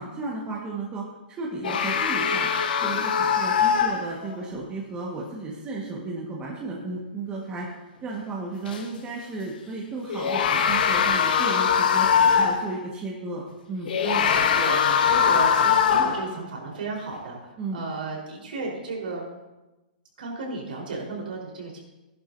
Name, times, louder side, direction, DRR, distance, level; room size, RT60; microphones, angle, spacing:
voice 1, 0.0-2.5 2.8-7.7 8.0-12.1 12.3-13.9 17.6-17.9, right 3 dB, 20° right, -3 dB, 1.7 m, -34 dB
sound 1, 1.6-4.4 8.7-8.8 10.1-12.7 13.9-16.3, left 7 dB, 75° left, 1.3 m, -22 dB
voice 2, 14.0-19.3 20.2-21.8, right 3 dB, 80° right, -1 dB, 4.4 m, -34 dB
15.0 x 11.0 x 2.8 m, 1.0 s
hypercardioid pair, 140°, 5 cm